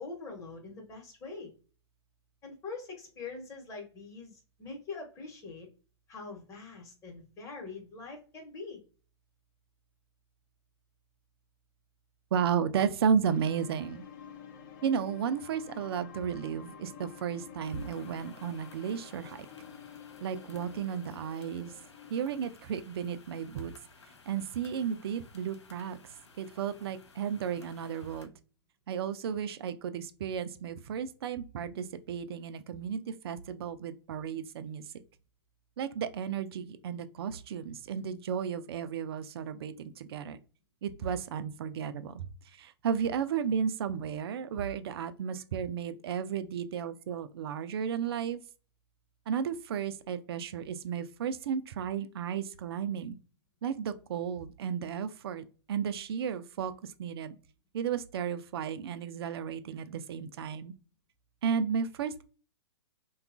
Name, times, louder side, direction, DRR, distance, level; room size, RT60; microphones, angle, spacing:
voice 1, 0.0-1.5 2.4-5.7 6.1-8.8, left 4 dB, 20° left, 1.0 m, -43 dB
voice 2, 12.3-14.0 14.8-19.5 20.2-21.7 22.1-23.7 24.3-26.0 26.4-28.3 28.9-34.8 35.8-40.4 40.8-42.3 42.6-48.4 49.3-53.2 53.6-57.4 57.7-60.7 61.4-62.2, right 7 dB, 60° right, 0.4 m, -33 dB
sound 1, 13.3-22.1, left 7 dB, 45° left, 0.7 m, -49 dB
sound 2, 17.6-28.3, left 4 dB, 85° left, 0.6 m, -57 dB
2.8 x 2.3 x 2.4 m
hypercardioid pair, 125°, 14 cm